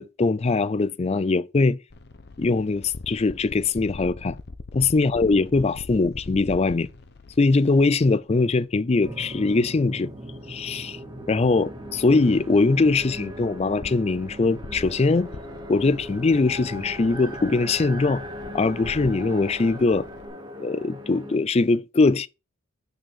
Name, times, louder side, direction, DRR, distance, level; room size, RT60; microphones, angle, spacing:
voice 1, 0.0-1.8 2.4-4.4 4.7-6.9 7.4-10.1 10.5-11.0 11.3-15.3 15.7-18.2 18.5-20.1 20.6-22.3, left 3 dB, 30° left, 0.4 m, -21 dB
sound 1, 1.9-8.7 11.0-20.3, left 3 dB, 50° left, 0.8 m, -43 dB
sound 2, 9.0-21.4, equal, 20° right, 1.1 m, -38 dB
6.4 x 4.3 x 6.1 m
head